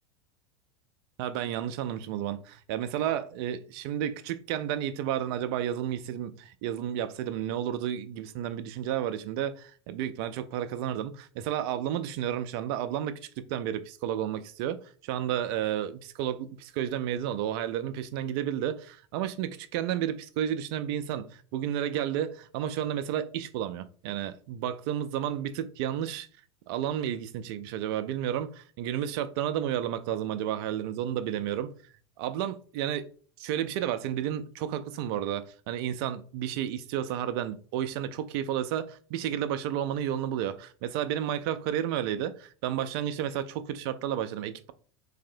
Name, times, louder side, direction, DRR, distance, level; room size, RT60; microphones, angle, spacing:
voice 1, 1.2-26.3 26.7-31.7 32.2-33.1 33.4-44.7, right 10 dB, 60° right, 0.4 m, -32 dB
3.3 x 2.8 x 2.5 m
hypercardioid pair, 85°, 15 cm